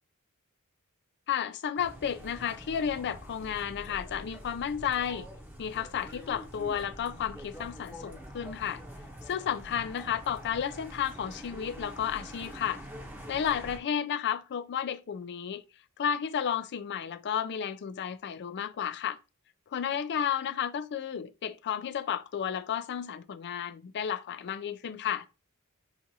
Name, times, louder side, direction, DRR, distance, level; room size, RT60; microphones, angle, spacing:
voice 1, 1.3-5.3 5.6-8.8 9.3-12.8 13.3-15.6 16.0-19.2 19.7-25.3, left 8 dB, 50° left, 0.4 m, -32 dB
sound 1, 1.8-13.8, equal, 10° right, 0.8 m, -45 dB
5.9 x 2.5 x 2.7 m
head